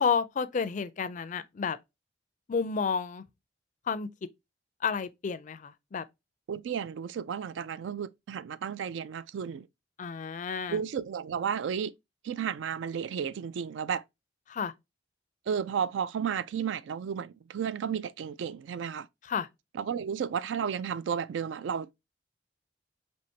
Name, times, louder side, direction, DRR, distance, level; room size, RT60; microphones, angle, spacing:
voice 1, 0.0-1.8 2.5-3.2 3.9-4.1 4.8-6.0 10.0-10.8 14.5-14.7 19.3-19.5, left 6 dB, 40° left, 0.4 m, -30 dB
voice 2, 6.5-9.7 10.7-11.9 12.2-14.0 15.5-19.1 19.7-22.1, right 7 dB, 75° right, 0.3 m, -33 dB
4.5 x 2.9 x 2.7 m
head